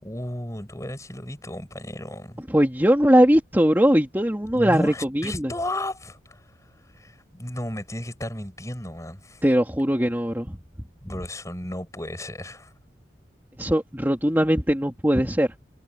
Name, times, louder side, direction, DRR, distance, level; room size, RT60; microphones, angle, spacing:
voice 1, 0.0-2.4 4.5-9.5 11.0-12.7, left 1 dB, 15° left, 7.3 m, -34 dB
voice 2, 2.5-5.5 9.4-10.6 13.6-15.5, equal, 10° right, 2.4 m, -20 dB
head